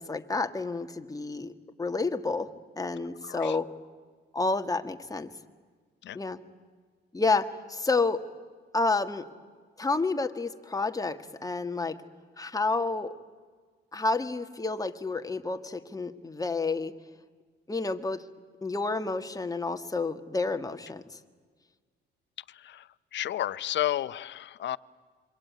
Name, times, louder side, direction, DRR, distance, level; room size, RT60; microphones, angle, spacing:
voice 1, 0.0-1.5 1.8-2.5 2.8-3.7 4.3-5.3 6.1-6.4 7.1-8.2 8.7-9.2 9.8-12.0 12.4-13.1 13.9-16.9 17.7-18.2 18.6-21.0, left 3 dB, 15° left, 7 dB, 1.6 m, -29 dB
voice 2, 3.2-3.6 6.0-6.2 22.5-24.8, left 12 dB, 65° left, 16 dB, 0.8 m, -32 dB
26.5 x 24.0 x 9.5 m, 1.6 s
cardioid pair, 90°, 20 cm